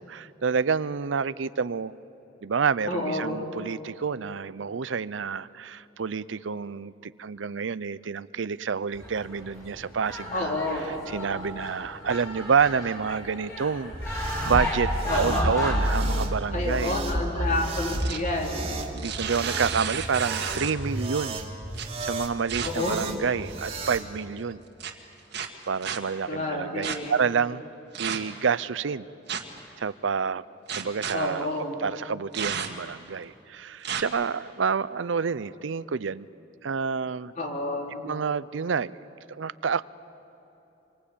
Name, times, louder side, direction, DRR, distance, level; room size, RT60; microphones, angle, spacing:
voice 1, 0.0-1.9 2.4-10.6 11.1-14.9 15.1-17.0 17.3-17.5 18.9-21.4 22.0-24.6 25.7-27.6 28.0-29.1 29.8-30.4 30.8-31.5 31.8-36.3 36.6-37.3 38.0-39.0 39.4-39.9, right 6 dB, 80° right, 18 dB, 0.6 m, -28 dB
voice 2, 2.9-3.4 10.3-10.9 15.1-15.5 16.5-18.7 22.6-23.0 26.3-27.1 31.1-31.9 37.4-38.1, left 2 dB, 45° left, 0 dB, 4.2 m, -29 dB
sound 1, 8.9-15.7, left 1 dB, 15° left, 6.6 m, -34 dB
sound 2, 13.9-24.0, right 1 dB, 30° right, 2.3 m, -31 dB
sound 3, 17.8-18.3 18.8-20.9 21.7-21.9 22.5-22.7 23.4-23.8 24.8-24.9 25.3-26.0 26.8-27.0 27.9-28.4 29.3-29.6 30.7-31.1 32.3-32.9 33.8-34.0, right 7 dB, 65° right, 1.9 m, -32 dB
27.0 x 24.5 x 8.5 m, 3.0 s
head